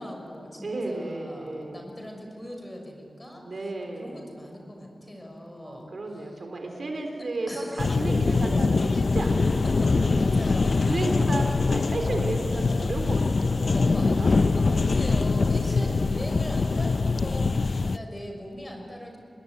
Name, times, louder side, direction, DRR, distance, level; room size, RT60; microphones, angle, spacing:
voice 1, 0.0-6.3 7.5-8.8 9.6-10.8 13.7-19.2, equal, 15° left, 2 dB, 6.1 m, -39 dB
voice 2, 0.6-1.8 3.4-4.3 5.6-14.3 15.7-16.0, right 2 dB, 55° right, 3 dB, 3.8 m, -33 dB
sound 1, 7.8-18.0, left 4 dB, 55° left, 0.6 m, -23 dB
26.0 x 20.5 x 9.7 m, 2.6 s
wide cardioid pair, 85°, 0 cm